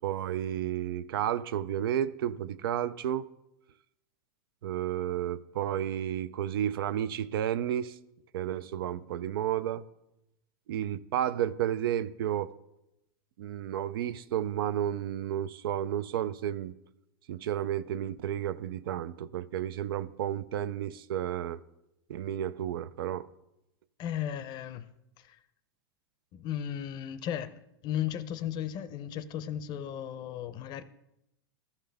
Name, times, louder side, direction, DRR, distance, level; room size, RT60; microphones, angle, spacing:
voice 1, 0.0-3.3 4.6-8.0 8.3-9.8 10.7-12.5 13.4-16.7 17.3-21.6 22.1-23.3, right 11 dB, 80° right, 0.4 m, -32 dB
voice 2, 24.0-24.9 25.2-25.4 26.3-30.8, left 10 dB, 35° left, 0.6 m, -35 dB
14.0 x 5.6 x 3.4 m
supercardioid pair, 130°, 12 cm